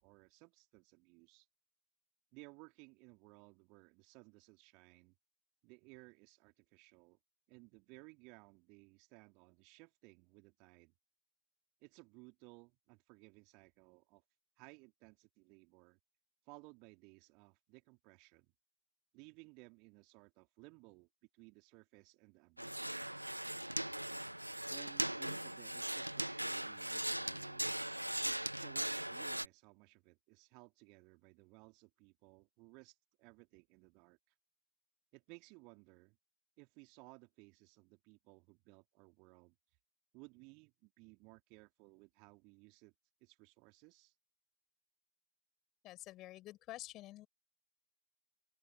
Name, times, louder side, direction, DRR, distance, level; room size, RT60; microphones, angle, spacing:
voice 1, 0.0-1.5 2.3-5.1 5.6-7.2 7.5-10.9 11.8-14.2 14.6-16.0 16.4-18.5 19.1-22.9 24.7-27.7 28.2-34.3 35.1-36.2 36.6-39.5 40.1-42.9 43.2-44.1, right 30 dB, 45° right, 3.1 m, -60 dB
sound 1, 22.6-29.5, right 1 dB, 85° right, 0.4 m, -39 dB
voice 2, 45.8-47.3, left 16 dB, 35° left, 6.9 m, -49 dB
open air
figure-of-eight pair, 90°, 0 cm